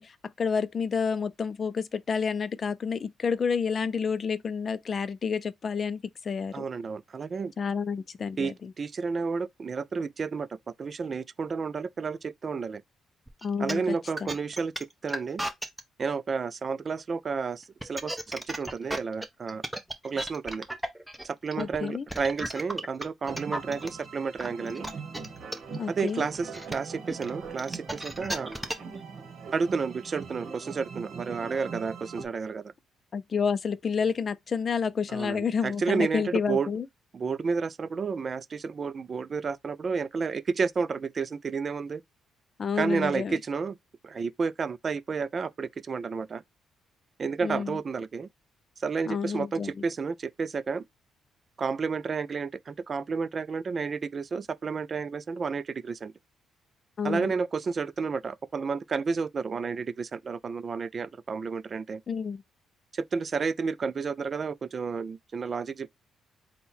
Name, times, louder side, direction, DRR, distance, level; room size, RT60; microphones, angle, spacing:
voice 1, 0.0-6.6 7.6-8.7 13.4-13.8 14.2-14.3 21.6-22.1 25.8-26.3 33.1-36.9 42.6-43.4 47.4-47.8 49.1-49.7 57.0-57.3 62.1-62.4, left 6 dB, 45° left, 0.4 m, -29 dB
voice 2, 6.5-7.5 8.4-10.5 10.8-12.8 13.6-15.4 16.0-19.6 20.0-20.7 21.2-24.9 25.9-28.5 29.5-32.7 35.1-36.7 37.1-42.0 42.8-43.8 44.0-46.4 47.2-48.3 48.8-50.8 51.6-56.1 57.0-62.0 62.9-65.9, right 5 dB, 40° right, 0.3 m, -31 dB
sound 1, 13.3-15.8 17.6-23.9 24.4-29.0, right 1 dB, 5° right, 0.7 m, -34 dB
sound 2, 23.2-32.3, right 5 dB, 60° right, 0.9 m, -42 dB
3.7 x 2.1 x 4.2 m
cardioid pair, 90°, 0 cm